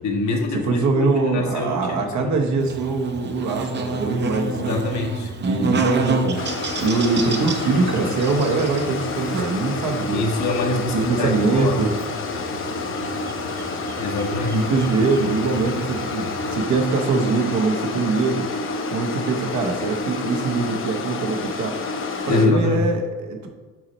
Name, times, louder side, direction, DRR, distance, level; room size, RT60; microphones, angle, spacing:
voice 1, 0.0-2.3 4.6-5.3 10.1-11.9 14.0-14.6 22.2-22.9, left 3 dB, 70° left, 1 dB, 1.2 m, -24 dB
voice 2, 0.6-4.8 5.4-6.4 6.8-10.2 10.7-11.9 14.5-18.5 18.9-21.8 22.3-23.5, right 4 dB, 70° right, 3 dB, 1.0 m, -23 dB
Buzz, 2.6-16.6, right 3 dB, 35° right, 0.6 m, -31 dB
sound 1, 6.4-22.5, left 3 dB, 45° left, 0.7 m, -29 dB
6.0 x 4.2 x 4.1 m, 1.3 s
cardioid pair, 90°, 30 cm